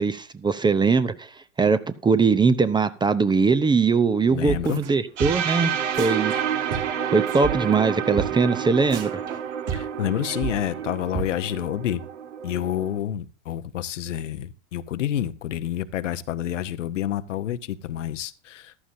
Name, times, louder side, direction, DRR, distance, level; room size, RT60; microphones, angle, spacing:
voice 1, 0.0-5.7 6.0-6.3 7.1-9.1, right 4 dB, 10° right, 0.7 m, -21 dB
voice 2, 4.3-4.8 9.7-12.0 12.4-18.8, left 11 dB, 75° left, 0.9 m, -28 dB
sound 1, 4.4-4.9 5.2-5.6 5.9-7.5 7.8-7.9 8.2-8.3 8.5-8.6 8.9-10.9 11.1-11.3, right 8 dB, 40° right, 3.0 m, -32 dB
sound 2, 5.2-13.0, right 8 dB, 70° right, 1.6 m, -29 dB
14.5 x 12.5 x 2.7 m
hypercardioid pair, 90°, 37 cm